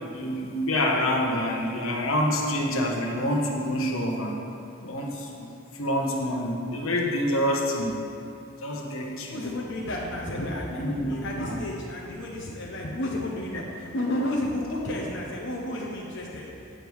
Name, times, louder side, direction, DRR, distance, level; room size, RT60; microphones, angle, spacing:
voice 1, 0.1-4.4 4.8-5.4 5.7-8.0 8.6-9.4 10.7-11.6, left 1 dB, 85° left, -1 dB, 1.3 m, -27 dB
voice 2, 9.3-10.8 11.1-16.4, left 1 dB, 60° left, -3 dB, 1.0 m, -31 dB
8.9 x 7.6 x 4.7 m, 2.6 s
head